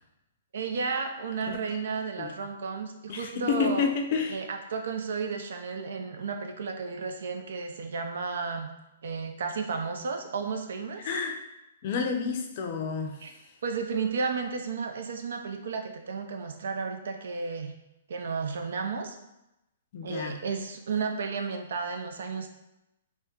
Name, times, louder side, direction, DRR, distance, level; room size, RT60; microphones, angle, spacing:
voice 1, 0.5-3.9 4.3-8.7 9.0-11.0 13.2-13.3 13.6-17.8 18.1-19.2 20.0-22.5, right 5 dB, 75° right, 5 dB, 0.4 m, -33 dB
voice 2, 1.5-1.8 2.2-2.3 3.1-4.4 11.0-11.4 11.8-13.2 19.9-20.4, left 6 dB, 45° left, 3 dB, 0.4 m, -30 dB
3.4 x 2.1 x 2.8 m, 0.90 s
hypercardioid pair, 145°, 0 cm